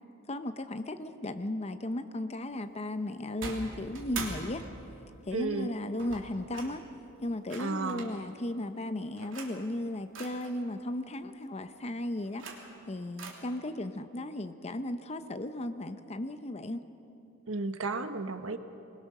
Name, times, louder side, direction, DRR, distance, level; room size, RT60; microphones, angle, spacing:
voice 1, 0.3-4.6 5.3-6.8 7.2-12.4 12.9-16.8, left 1 dB, 30° left, 9 dB, 0.8 m, -35 dB
sound 1, 3.4-5.1 6.0-6.8 7.5-8.2 9.2-9.6 10.1-10.5 12.1-12.8 13.2-13.3, right 3 dB, 70° right, 3.1 m, -42 dB
voice 2, 5.3-5.7 7.6-8.1 17.5-18.6, right 3 dB, 85° right, 8 dB, 1.3 m, -33 dB
24.0 x 21.0 x 6.6 m, 2.9 s
head